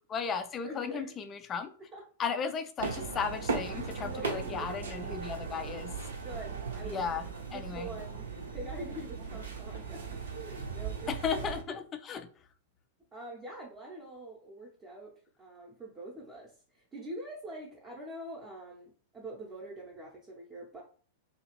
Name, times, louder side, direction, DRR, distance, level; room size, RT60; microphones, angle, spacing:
voice 1, 0.1-1.7 2.2-5.9 6.9-7.2 7.5-7.9 11.1-12.3, left 6 dB, 25° left, 0.4 m, -35 dB
voice 2, 0.6-1.2 1.9-2.0 3.6-5.2 6.2-7.1 7.5-8.3 8.5-11.4 13.1-15.1 15.4-20.8, right 1 dB, 20° right, 0.7 m, -45 dB
sound 1, 2.8-11.6, right 5 dB, 65° right, 0.6 m, -38 dB
2.7 x 2.4 x 2.9 m
figure-of-eight pair, 95°, 0 cm